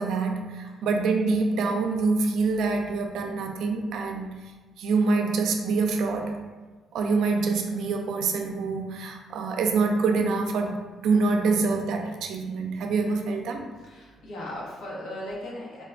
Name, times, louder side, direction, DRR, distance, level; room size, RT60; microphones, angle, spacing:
voice 1, 0.0-4.3 4.8-6.4 6.9-10.8 11.0-13.6, right 4 dB, 80° right, 4 dB, 0.4 m, -25 dB
voice 2, 13.8-15.8, left 1 dB, 85° left, -5 dB, 1.1 m, -37 dB
4.0 x 2.2 x 3.6 m, 1.3 s
cardioid pair, 90°, 0 cm